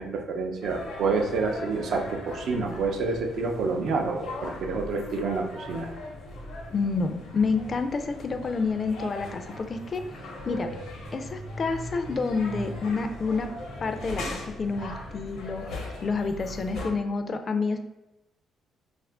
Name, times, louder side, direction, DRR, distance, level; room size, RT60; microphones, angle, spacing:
voice 1, 0.0-5.9, right 4 dB, 70° right, 3 dB, 0.5 m, -28 dB
sound 1, 0.6-16.9, left 1 dB, 85° left, 0.8 m, -39 dB
voice 2, 6.7-10.7 11.1-13.5 13.8-17.8, left 4 dB, 40° left, 7 dB, 0.3 m, -29 dB
2.8 x 2.4 x 3.4 m, 0.98 s
cardioid pair, 90°, 0 cm